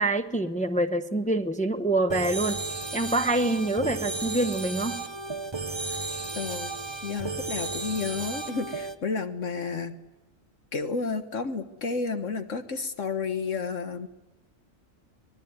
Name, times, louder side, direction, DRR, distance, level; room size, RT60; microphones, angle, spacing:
voice 1, 0.0-2.6 2.9-5.0, right 2 dB, 5° left, 6 dB, 1.1 m, -26 dB
sound 1, 2.1-8.9, right 3 dB, 20° right, 1.1 m, -34 dB
voice 2, 6.4-6.7 7.0-10.0 10.7-14.1, left 4 dB, 70° left, 8 dB, 1.7 m, -31 dB
24.0 x 20.5 x 9.6 m, 1.1 s
omnidirectional pair, 1.4 m